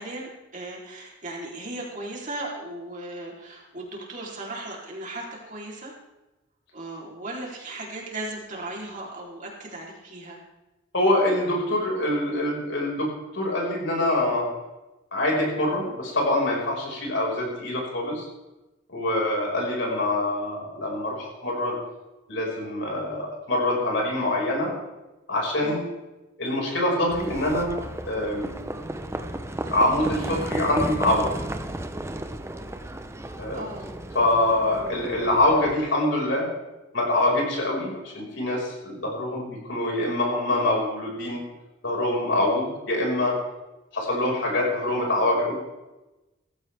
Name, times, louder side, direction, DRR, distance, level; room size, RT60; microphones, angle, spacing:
voice 1, 0.0-5.9 6.7-10.4 25.6-25.8 33.5-33.9, right 2 dB, 40° right, -2 dB, 3.6 m, -37 dB
voice 2, 10.9-14.5 15.1-18.3 18.9-21.7 22.3-24.7 25.3-25.8 26.4-27.7 28.1-28.5 29.7-31.3 33.4-33.6 34.1-36.5 36.9-41.4 41.8-43.3 43.9-45.6, left 1 dB, 65° left, -2 dB, 5.5 m, -25 dB
Livestock farm animals working animals, 27.1-35.7, right 1 dB, 15° right, 0.8 m, -34 dB
17.0 x 15.0 x 3.5 m, 1.0 s
head